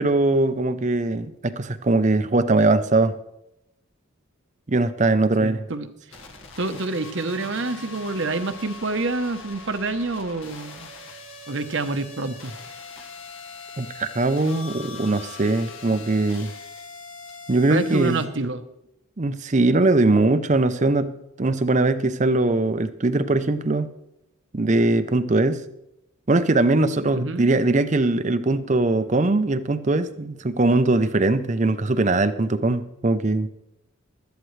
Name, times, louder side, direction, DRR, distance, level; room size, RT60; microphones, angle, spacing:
voice 1, 0.0-3.1 4.7-5.7 13.8-16.5 17.5-18.2 19.2-23.9 24.5-25.6 26.3-33.5, right 2 dB, 35° right, 12 dB, 0.6 m, -21 dB
voice 2, 5.4-5.9 6.6-10.9 11.5-12.5 17.7-18.6 27.1-27.5, right 3 dB, 60° right, 9 dB, 0.9 m, -27 dB
sound 1, 6.1-18.3, left 4 dB, 70° left, 1.6 m, -41 dB
16.5 x 12.5 x 3.2 m, 0.87 s
head